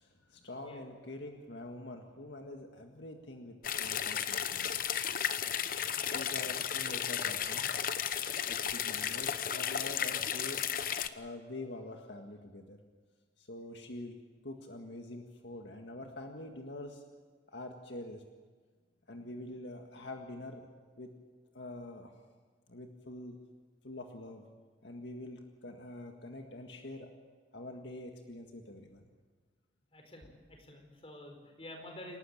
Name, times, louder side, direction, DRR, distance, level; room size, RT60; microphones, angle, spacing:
voice 1, 0.0-4.8 6.0-7.7 8.5-10.6 11.1-12.8 13.4-14.1 14.4-17.0 17.5-18.2 19.1-20.7 21.0-21.1 21.5-22.1 22.7-23.4 23.8-24.4 24.8-27.1 27.5-29.0, left 1 dB, 75° left, 3 dB, 1.8 m, -45 dB
voice 2, 0.6-0.9 29.9-32.2, left 1 dB, 30° left, 3 dB, 4.6 m, -49 dB
sound 1, 3.6-11.1, left 9 dB, 50° left, 0.9 m, -34 dB
28.5 x 12.5 x 8.7 m, 1.5 s
head